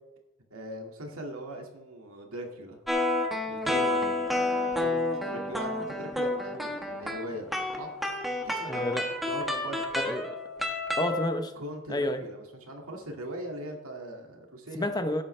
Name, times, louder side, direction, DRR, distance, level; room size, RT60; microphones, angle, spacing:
voice 1, 0.5-2.8 3.4-7.9 8.5-9.0 9.3-9.8 11.6-15.0, right 1 dB, 75° right, 2 dB, 2.2 m, -40 dB
sound 1, 2.9-11.3, left 2 dB, ahead, 1.4 m, -30 dB
voice 2, 8.7-9.1 9.9-10.3 11.0-11.5 11.9-12.2 14.7-15.2, left 1 dB, 20° left, 7 dB, 0.9 m, -29 dB
17.0 x 8.7 x 3.3 m, 1.0 s
head